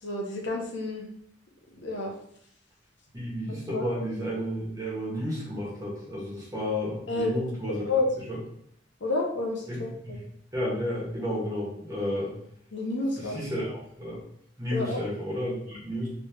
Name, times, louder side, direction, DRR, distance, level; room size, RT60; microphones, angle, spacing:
voice 1, 0.0-1.1 1.7-2.1 3.5-3.9 7.1-7.4 7.8-8.1 9.0-9.9 12.7-13.4 14.7-15.0, left 2 dB, 80° left, 0 dB, 0.8 m, -30 dB
voice 2, 3.1-7.9 8.3-8.4 9.7-10.2 10.5-12.3 13.2-14.2 14.6-16.1, equal, 20° right, -6 dB, 1.4 m, -32 dB
3.1 x 3.0 x 3.3 m, 0.70 s
head